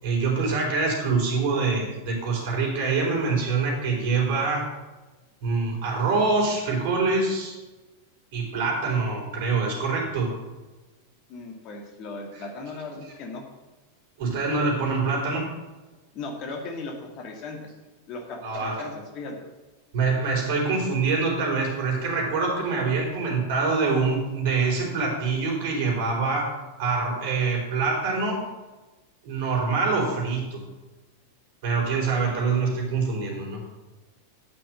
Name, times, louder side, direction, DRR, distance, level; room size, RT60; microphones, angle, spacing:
voice 1, 0.0-4.7 5.4-7.5 8.3-10.3 12.3-12.4 14.2-15.5 18.4-18.8 19.9-26.5 26.8-28.5 29.2-30.6 31.6-33.6, right 4 dB, 50° right, -1 dB, 4.2 m, -25 dB
voice 2, 11.3-13.5 16.1-17.6 18.1-19.4, left 3 dB, 40° left, 2 dB, 2.0 m, -37 dB
9.5 x 6.0 x 7.6 m, 1.2 s
figure-of-eight pair, 90°, 0 cm